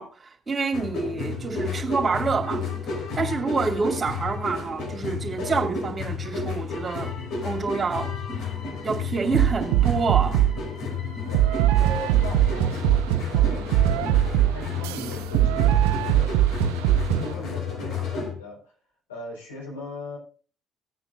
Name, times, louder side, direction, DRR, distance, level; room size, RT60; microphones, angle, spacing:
voice 1, 0.0-7.1 7.4-8.1 8.8-10.4, right 4 dB, 35° right, 2.6 m, -27 dB
sound 1, 0.7-18.3, left 5 dB, 65° left, 5.0 m, -32 dB
sound 2, 9.3-10.6 11.3-17.3, right 13 dB, 80° right, 0.5 m, -21 dB
voice 2, 11.8-16.7 17.1-18.7 19.1-20.2, left 2 dB, 90° left, 4.5 m, -39 dB
19.0 x 8.8 x 2.6 m
hypercardioid pair, 50°, 0 cm